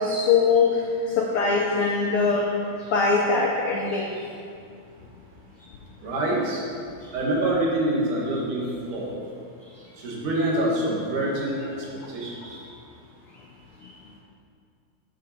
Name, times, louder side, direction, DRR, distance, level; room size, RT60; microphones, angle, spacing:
voice 1, 0.0-2.5 2.8-4.1 7.0-7.1, left 4 dB, 85° left, -1 dB, 1.2 m, -22 dB
voice 2, 6.0-6.6 7.1-9.2 10.0-11.8 12.1-12.6, right 1 dB, 90° right, -4 dB, 3.1 m, -26 dB
10.5 x 6.6 x 4.2 m, 2.3 s
omnidirectional pair, 3.5 m